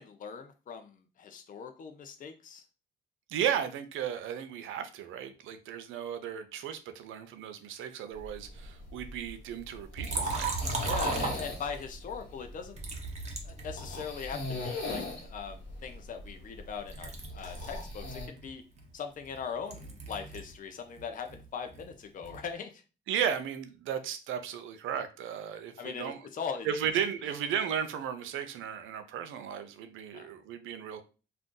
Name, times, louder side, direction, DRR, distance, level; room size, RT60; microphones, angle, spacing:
voice 1, 0.0-2.6 10.8-12.8 13.4-18.6 18.9-22.8 25.8-26.7 30.1-30.3, left 6 dB, 40° left, 0.5 m, -40 dB
voice 2, 3.3-10.5 23.1-26.2 26.6-31.0, right 8 dB, 85° right, 0.5 m, -35 dB
sound 1, 8.2-18.3, left 2 dB, 65° left, 1.2 m, -40 dB
Liquid, 10.0-11.9 12.8-14.3 14.9-16.6 16.9-20.6 20.9-22.5, right 4 dB, 35° right, 0.8 m, -37 dB
2.5 x 2.3 x 3.7 m
cardioid pair, 90°, 20 cm